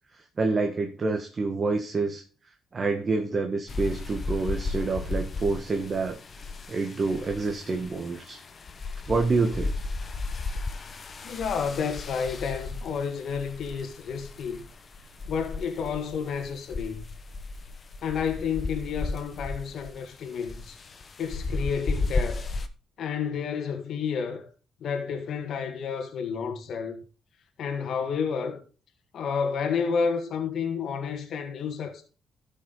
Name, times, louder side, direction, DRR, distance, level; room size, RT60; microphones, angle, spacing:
voice 1, 0.4-2.2 2.7-6.2 6.7-8.4 9.1-9.7, right 3 dB, 40° right, 1.3 m, -27 dB
sound 1, 3.7-22.7, left 3 dB, 40° left, 0.9 m, -34 dB
voice 2, 11.2-14.6 15.3-17.1 18.0-20.8 21.2-22.5 23.0-24.5 24.8-27.0 27.6-28.6 29.1-32.0, left 6 dB, 65° left, 1.6 m, -30 dB
12.0 x 5.6 x 4.0 m
cardioid pair, 75°, 0 cm